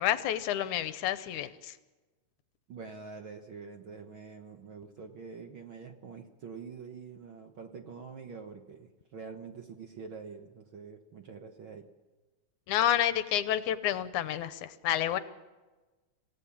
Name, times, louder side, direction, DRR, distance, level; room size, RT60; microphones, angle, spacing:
voice 1, 0.0-1.7 12.7-15.2, left 11 dB, 75° left, 12 dB, 2.3 m, -29 dB
voice 2, 2.7-11.9, right 5 dB, 55° right, 5 dB, 1.5 m, -46 dB
27.0 x 16.5 x 7.4 m, 1.2 s
omnidirectional pair, 3.6 m